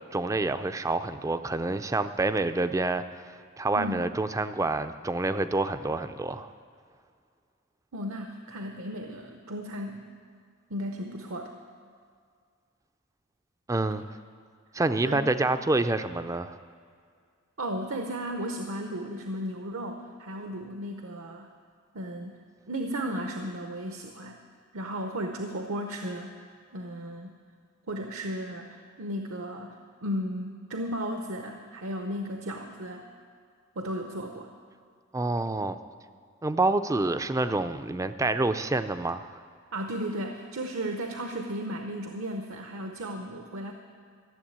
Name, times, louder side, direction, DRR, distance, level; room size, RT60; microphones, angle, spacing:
voice 1, 0.1-6.5 13.7-14.0 14.7-16.6 35.1-35.8 36.4-39.3, right 2 dB, 15° right, 11 dB, 0.4 m, -27 dB
voice 2, 3.7-4.1 7.9-10.1 10.7-11.5 15.0-15.3 17.6-21.5 21.9-24.4 24.7-26.4 26.7-27.4 27.9-33.1 33.8-34.5 39.7-43.7, equal, 70° right, 4 dB, 0.8 m, -35 dB
14.0 x 7.5 x 8.6 m, 2.1 s
head